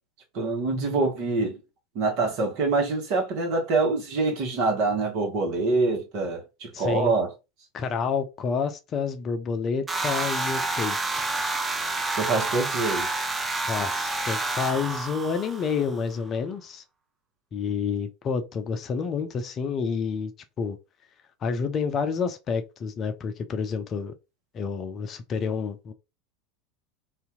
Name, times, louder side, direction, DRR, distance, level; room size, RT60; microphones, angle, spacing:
voice 1, 0.3-1.6 1.9-7.3 12.1-13.2, right 3 dB, 50° right, 1.3 m, -25 dB
voice 2, 6.7-7.1 7.7-11.3 13.7-16.8 17.5-20.3 20.6-20.8 21.4-24.1 24.5-25.9, left 5 dB, 35° left, 0.6 m, -29 dB
sound 1, 9.9-16.0, right 2 dB, 15° right, 0.6 m, -29 dB
2.8 x 2.6 x 3.6 m
figure-of-eight pair, 80°, 0 cm